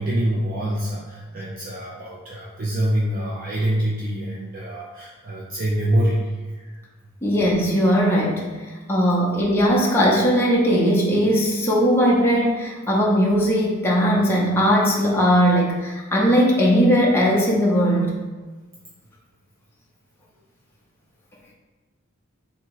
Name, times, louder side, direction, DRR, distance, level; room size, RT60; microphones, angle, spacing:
voice 1, 0.0-6.7, right 1 dB, 40° right, -4 dB, 0.5 m, -25 dB
voice 2, 7.2-8.5 8.9-18.1, equal, 10° left, -4 dB, 0.6 m, -19 dB
3.5 x 2.9 x 4.7 m, 1.3 s
head